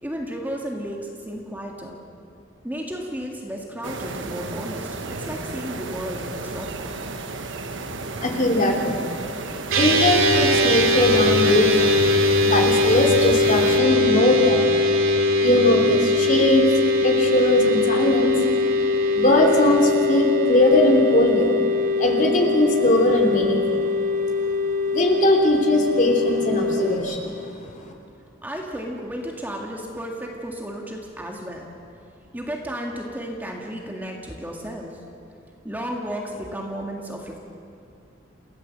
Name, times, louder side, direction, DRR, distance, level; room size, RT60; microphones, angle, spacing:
voice 1, 0.0-2.0 2.6-7.0 28.4-31.7 32.3-35.0 35.6-37.4, equal, 10° right, 0 dB, 2.0 m, -33 dB
sound 1, 3.8-13.8, right 3 dB, 65° right, 1.3 m, -33 dB
voice 2, 7.7-14.6 15.0-21.7 22.0-23.9 24.1-24.5 24.9-27.9, left 1 dB, 40° left, 1 dB, 3.1 m, -21 dB
sound 2, 9.7-27.0, left 2 dB, 85° right, 2.9 m, -21 dB
28.5 x 16.0 x 7.6 m, 2.5 s
head